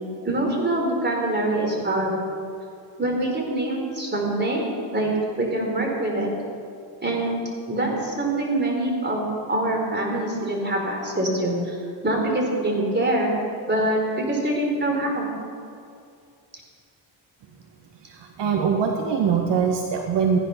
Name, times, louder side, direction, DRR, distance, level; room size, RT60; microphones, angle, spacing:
voice 1, 0.2-2.1 3.0-4.6 4.9-5.1 5.4-6.3 7.0-11.8 12.0-13.4 13.7-15.3, right 1 dB, 25° right, 0 dB, 4.1 m, -24 dB
voice 2, 18.0-20.4, right 6 dB, 65° right, 2 dB, 1.4 m, -23 dB
15.0 x 10.5 x 5.7 m, 2.4 s
cardioid pair, 85°, 45 cm